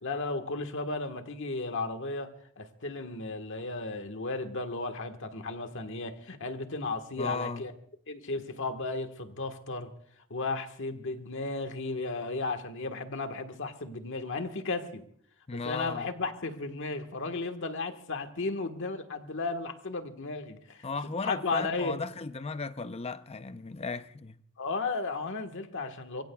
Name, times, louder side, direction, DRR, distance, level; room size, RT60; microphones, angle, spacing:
voice 1, 0.0-7.7 8.1-9.9 10.3-15.0 15.5-22.0 24.6-26.2, left 3 dB, 55° left, 1.4 m, -34 dB
voice 2, 7.2-7.6 15.5-16.1 20.8-24.4, left 4 dB, 25° left, 0.6 m, -35 dB
25.0 x 23.0 x 2.3 m
head